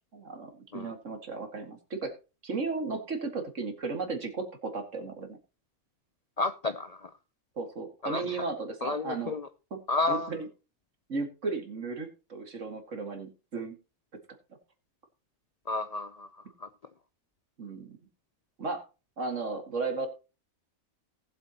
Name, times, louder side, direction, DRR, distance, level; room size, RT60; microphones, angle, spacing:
voice 1, 0.1-2.1 2.4-5.4 7.6-9.4 9.7-10.5 11.1-13.8 17.6-18.0 18.6-18.8 19.2-20.1, right 3 dB, 55° right, 2.3 m, -35 dB
voice 2, 6.4-7.0 8.0-8.2 8.8-9.4 9.9-10.3 15.7-16.3, left 3 dB, 45° left, 0.5 m, -30 dB
18.5 x 7.8 x 2.9 m
omnidirectional pair, 1.5 m